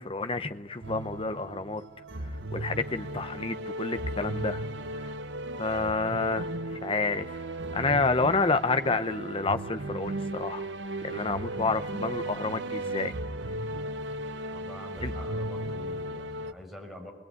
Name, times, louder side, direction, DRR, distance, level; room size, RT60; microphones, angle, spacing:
voice 1, 0.0-1.8 2.5-4.7 4.9-5.1 5.6-6.5 6.8-7.4 7.7-10.7 11.0-13.1 15.0-15.1, left 3 dB, 30° left, 10 dB, 1.0 m, -29 dB
sound 1, 0.8-16.5, right 1 dB, 70° right, 0.9 m, -36 dB
voice 2, 14.5-17.1, left 1 dB, ahead, 0 dB, 5.8 m, -45 dB
23.5 x 20.5 x 9.5 m, 1.2 s
head